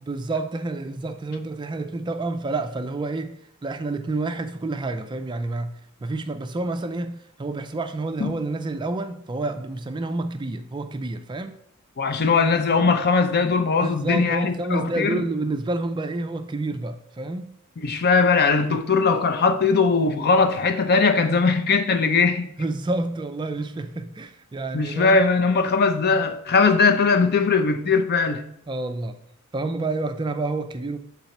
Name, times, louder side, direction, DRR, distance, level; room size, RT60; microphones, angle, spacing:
voice 1, 0.0-3.4 3.6-5.7 6.0-11.6 13.8-17.5 22.6-25.2 28.7-29.2 29.5-31.0, right 2 dB, 20° right, 0.3 m, -29 dB
voice 2, 12.0-15.2 17.8-22.5 24.7-28.4, left 4 dB, 45° left, 0.5 m, -20 dB
7.0 x 4.0 x 4.1 m
head